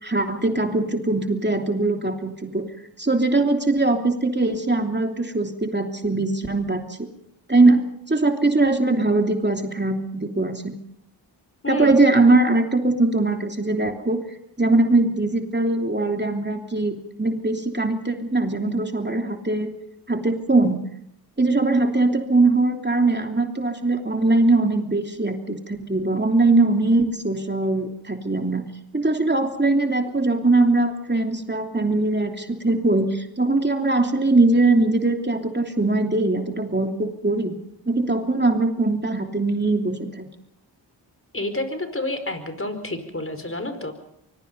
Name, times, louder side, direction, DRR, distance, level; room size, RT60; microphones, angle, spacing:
voice 1, 0.0-2.6 3.0-7.0 7.5-7.8 8.1-10.8 11.7-14.2 14.6-19.7 20.1-20.8 21.4-28.6 28.9-37.5 37.9-40.2, right 2 dB, 25° right, 4 dB, 3.0 m, -21 dB
voice 2, 41.3-43.9, left 1 dB, 30° left, 8 dB, 5.0 m, -29 dB
24.5 x 21.5 x 5.5 m, 0.74 s
supercardioid pair, 40°, 45 cm